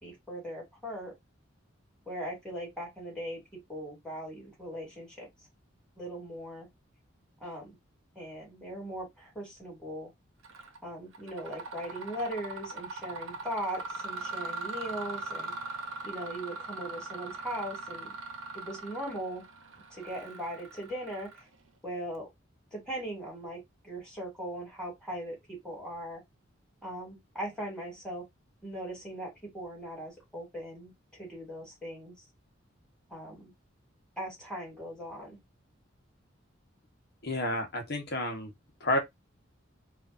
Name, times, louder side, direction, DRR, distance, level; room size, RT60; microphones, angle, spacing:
voice 1, 0.0-1.1 2.1-5.3 6.0-6.7 7.4-7.8 8.1-10.1 10.8-15.5 16.0-18.1 18.5-19.4 19.9-21.5 21.8-22.3 22.7-26.2 26.8-28.2 28.6-32.1 33.1-33.5 34.2-35.4, right 1 dB, 5° left, 2.8 m, -39 dB
Mechanisms, 10.4-10.8 11.1-21.7, right 3 dB, 85° right, 0.9 m, -40 dB
voice 2, 37.2-38.5 38.8-39.0, left 1 dB, 55° left, 1.2 m, -30 dB
4.8 x 2.7 x 2.6 m
head